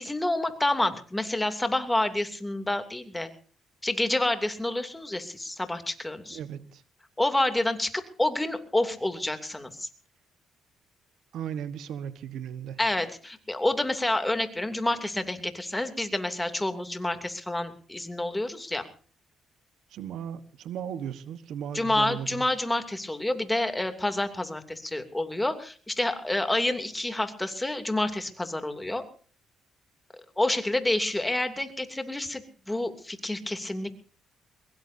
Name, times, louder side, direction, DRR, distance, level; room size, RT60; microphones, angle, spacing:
voice 1, 0.0-3.3 3.8-6.4 7.2-9.9 12.8-18.9 21.7-29.0 30.4-33.9, left 1 dB, 10° left, 8 dB, 2.8 m, -28 dB
voice 2, 6.3-6.8 11.3-12.8 19.9-22.5, right 9 dB, 80° right, 13 dB, 1.3 m, -36 dB
22.5 x 22.0 x 2.8 m, 0.41 s
cardioid pair, 90°, 0 cm